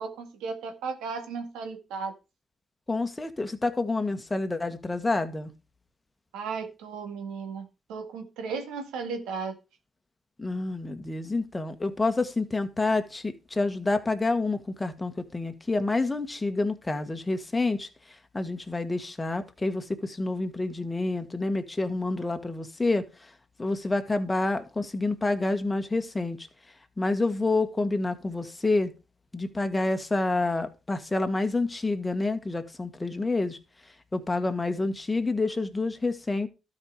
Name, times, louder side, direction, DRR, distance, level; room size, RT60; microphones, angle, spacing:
voice 1, 0.0-2.1 6.3-9.6, right 5 dB, 90° right, 2.0 m, -35 dB
voice 2, 2.9-5.5 10.4-17.9 18.3-23.0 23.6-26.5 27.0-28.9 29.3-33.6 34.1-36.5, left 2 dB, 15° left, 1.5 m, -28 dB
12.5 x 5.3 x 4.8 m
cardioid pair, 90°, 0 cm